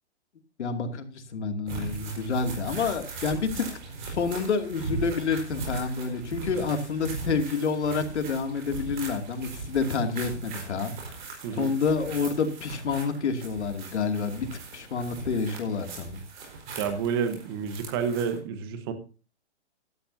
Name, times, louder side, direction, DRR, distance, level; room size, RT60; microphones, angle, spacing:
voice 1, 0.6-3.7 4.0-11.2 11.5-14.5 14.7-16.2, left 5 dB, 75° left, 6 dB, 2.5 m, -28 dB
sound 1, 1.7-18.4, right 3 dB, 40° right, 4.6 m, -39 dB
voice 2, 16.8-18.9, right 6 dB, 20° right, 9 dB, 1.1 m, -29 dB
16.0 x 12.5 x 2.7 m, 0.34 s
hypercardioid pair, 170°, 35 cm